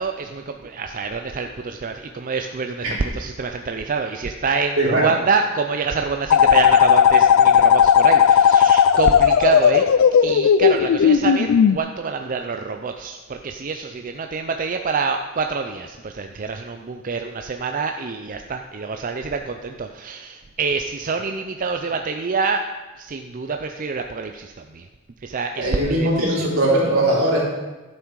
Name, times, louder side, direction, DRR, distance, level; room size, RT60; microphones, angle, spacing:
voice 1, 0.0-9.9 10.2-22.6 23.0-24.8 25.2-26.5, right 4 dB, 40° right, 5 dB, 0.5 m, -26 dB
sound 1, 6.3-11.8, left 8 dB, 70° left, 0.3 m, -15 dB
voice 2, 25.6-27.4, right 1 dB, 80° right, -5 dB, 3.9 m, -20 dB
12.5 x 7.5 x 4.7 m, 1.2 s
head